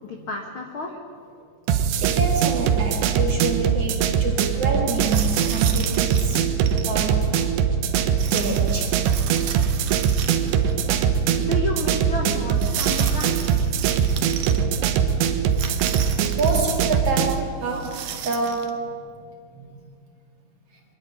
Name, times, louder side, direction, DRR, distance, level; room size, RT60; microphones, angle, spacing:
voice 1, 0.0-1.0 11.4-13.5, left 2 dB, 75° left, 2 dB, 1.2 m, -31 dB
sound 1, 1.7-17.4, right 7 dB, 90° right, 3.4 m, -22 dB
voice 2, 2.0-6.5 6.8-7.3 8.3-9.1 14.4-15.1 15.9-16.0 16.4-18.8 19.1-19.2 19.6-19.8, right 3 dB, 40° right, 0 dB, 2.7 m, -28 dB
sound 2, 5.0-6.9 8.2-10.7 11.0-11.1 12.6-14.6 15.5-16.7 17.7-18.7, right 9 dB, 65° right, 2.1 m, -34 dB
24.5 x 11.0 x 10.0 m, 2.2 s
omnidirectional pair, 4.9 m